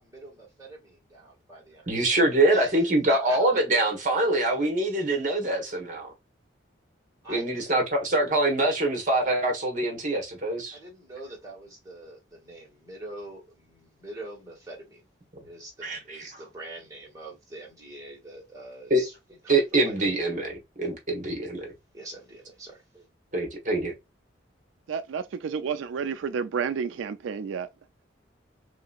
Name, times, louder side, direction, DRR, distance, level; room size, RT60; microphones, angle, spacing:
voice 1, 0.0-2.1 2.5-3.7 7.2-7.8 10.7-15.1 15.4-19.1 19.4-19.9 21.9-23.1, right 2 dB, 15° right, 1.6 m, -44 dB
voice 2, 1.9-6.1 7.3-10.8 15.8-16.3 18.9-19.0 19.5-21.7 23.3-23.9, right 2 dB, 40° right, 1.1 m, -24 dB
voice 3, 24.9-27.7, right 6 dB, 85° right, 0.3 m, -30 dB
3.2 x 2.9 x 2.3 m
head